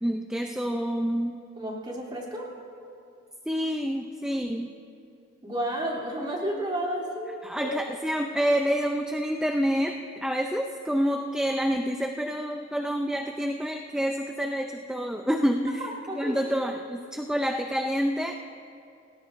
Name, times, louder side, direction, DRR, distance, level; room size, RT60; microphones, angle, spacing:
voice 1, 0.0-1.4 3.5-4.7 7.4-18.3, equal, 5° right, 3 dB, 0.4 m, -28 dB
voice 2, 1.6-2.5 5.4-7.7 16.1-16.4, right 1 dB, 25° right, -4 dB, 3.1 m, -31 dB
28.5 x 18.5 x 2.6 m, 2.5 s
head